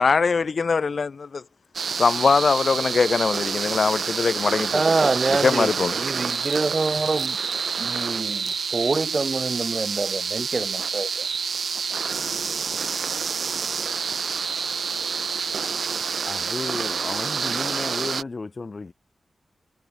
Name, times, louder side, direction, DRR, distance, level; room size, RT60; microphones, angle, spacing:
voice 1, 0.0-1.4 2.0-4.7 5.4-5.9, left 5 dB, 55° left, 0.9 m, -21 dB
sound 1, 1.7-18.2, right 6 dB, 70° right, 0.5 m, -28 dB
voice 2, 4.7-7.4 7.8-11.3, right 3 dB, 35° right, 1.8 m, -26 dB
voice 3, 16.3-18.9, left 3 dB, 35° left, 7.9 m, -33 dB
wide cardioid pair, 145°, 0 cm